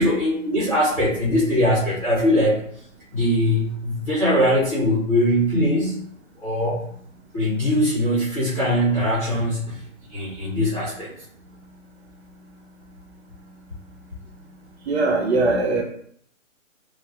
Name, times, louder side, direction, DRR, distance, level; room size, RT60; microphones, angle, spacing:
voice 1, 0.0-2.6 3.1-6.1 6.4-6.8 7.3-9.8 10.1-11.1, equal, 5° left, -12 dB, 0.8 m, -21 dB
voice 2, 14.9-15.8, right 2 dB, 55° right, 1 dB, 0.7 m, -20 dB
3.1 x 2.3 x 2.7 m, 0.63 s
hypercardioid pair, 160°, 39 cm